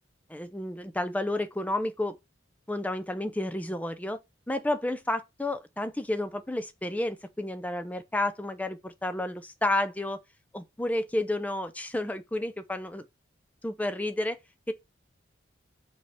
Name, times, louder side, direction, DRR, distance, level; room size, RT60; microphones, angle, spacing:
voice 1, 0.3-2.2 2.7-4.2 4.5-10.2 10.5-13.0 13.6-14.4 14.7-14.8, left 1 dB, 10° left, 0.5 m, -31 dB
5.4 x 4.3 x 4.3 m
head